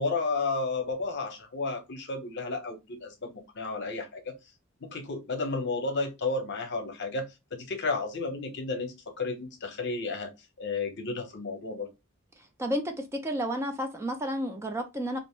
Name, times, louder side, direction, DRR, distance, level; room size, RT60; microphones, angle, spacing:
voice 1, 0.0-4.4 4.8-10.3 10.6-11.9, left 3 dB, 55° left, 0.7 m, -32 dB
voice 2, 12.6-15.2, equal, 15° right, 0.4 m, -31 dB
2.5 x 2.0 x 3.5 m
head